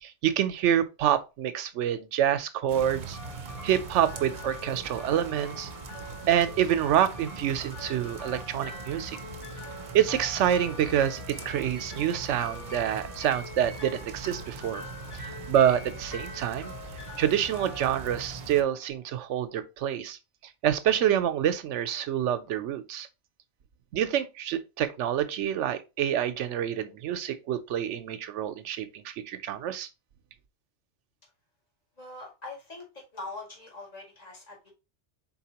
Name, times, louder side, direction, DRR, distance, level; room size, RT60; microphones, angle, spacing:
voice 1, 0.0-3.2 3.6-5.7 6.3-9.2 9.9-14.8 15.1-16.7 17.2-20.2 20.6-23.1 23.9-29.9, right 10 dB, 90° right, 0.9 m, -27 dB
sound 1, 2.7-18.6, right 3 dB, 50° right, 0.7 m, -42 dB
sound 2, 3.1-19.1, left 2 dB, 65° left, 2.9 m, -45 dB
voice 2, 32.0-32.8 33.1-34.7, left 2 dB, 35° left, 1.9 m, -42 dB
4.3 x 4.0 x 2.8 m
omnidirectional pair, 1.2 m